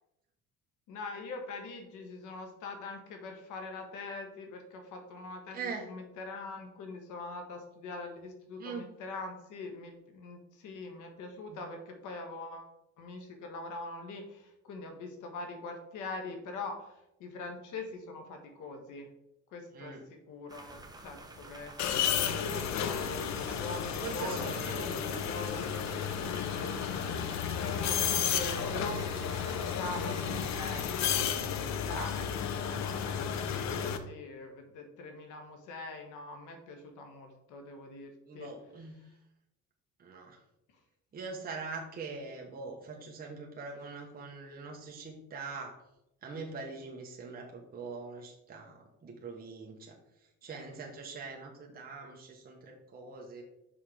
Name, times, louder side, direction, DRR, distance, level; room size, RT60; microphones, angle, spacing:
voice 1, 0.9-12.7 13.0-16.9 17.2-19.1 19.5-24.5 24.7-25.6 26.5-26.8 27.6-38.5, left 3 dB, 80° left, 4 dB, 1.5 m, -43 dB
voice 2, 5.5-5.9 8.6-8.9 11.5-11.6 19.7-20.0 22.2-22.5 24.0-25.3 38.3-38.9 40.0-40.4 41.1-45.8 46.2-49.9 50.4-53.4, right 4 dB, 30° right, 0 dB, 1.1 m, -43 dB
sound 1, 20.5-30.9, right 2 dB, 15° right, 1.0 m, -50 dB
sound 2, 21.8-34.0, left 8 dB, 65° left, 0.8 m, -32 dB
5.7 x 5.7 x 4.9 m, 0.85 s
cardioid pair, 135°, 30 cm